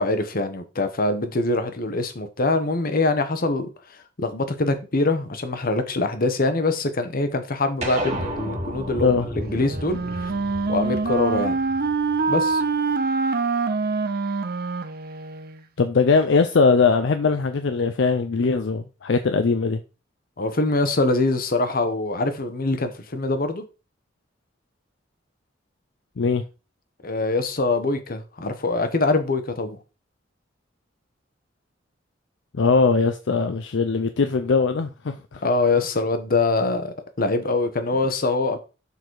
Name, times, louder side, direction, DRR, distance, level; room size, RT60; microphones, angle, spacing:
voice 1, 0.0-3.7 4.2-10.3 10.7-11.6 12.3-12.6 20.4-23.6 27.0-29.8 35.4-38.6, left 2 dB, 50° left, 1.1 m, -24 dB
sound 1, 7.8-12.5, right 1 dB, 35° right, 2.3 m, -33 dB
Wind instrument woodwind instrument, 9.5-15.6, right 4 dB, 55° right, 0.7 m, -25 dB
voice 2, 15.8-19.8 26.2-26.4 32.5-35.4, left 4 dB, 70° left, 0.5 m, -20 dB
6.8 x 4.1 x 4.7 m
head